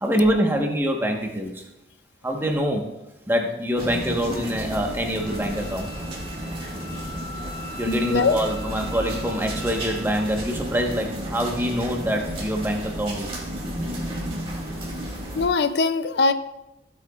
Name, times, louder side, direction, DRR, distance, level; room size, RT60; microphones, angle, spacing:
voice 1, 0.0-1.6 2.2-2.8 3.3-5.9 7.8-13.3 13.8-13.9, equal, 15° right, 1 dB, 1.2 m, -25 dB
sound 1, 3.8-15.5, equal, 30° right, 2.1 m, -33 dB
Wind instrument woodwind instrument, 5.2-10.4, equal, 5° left, 1.8 m, -41 dB
voice 2, 7.9-8.4 15.4-16.3, left 4 dB, 70° left, 11 dB, 0.5 m, -21 dB
16.0 x 8.1 x 2.4 m, 0.94 s
head